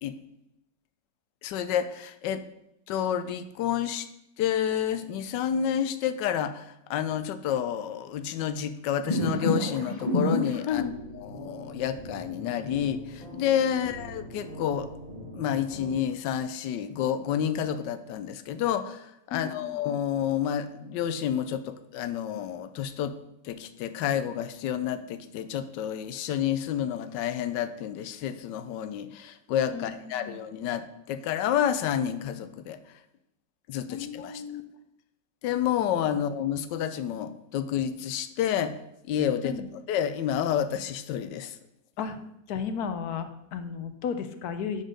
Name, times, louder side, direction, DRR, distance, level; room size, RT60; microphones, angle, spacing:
voice 1, 1.4-2.4 2.9-4.1 4.4-10.8 11.2-14.9 15.3-23.2 23.4-32.8 33.7-34.4 35.4-38.8 39.1-39.5 39.9-41.6, left 9 dB, 85° left, 12 dB, 1.3 m, -29 dB
sound 1, 9.1-16.0, left 1 dB, 25° left, 1.4 m, -33 dB
voice 2, 10.7-11.0 13.7-14.0 19.3-19.8 29.7-30.4 33.9-34.6 36.1-36.2 39.4-39.7 42.0-42.2 42.5-44.8, left 7 dB, 70° left, 9 dB, 1.1 m, -34 dB
9.9 x 4.1 x 5.0 m, 0.83 s
omnidirectional pair, 1.8 m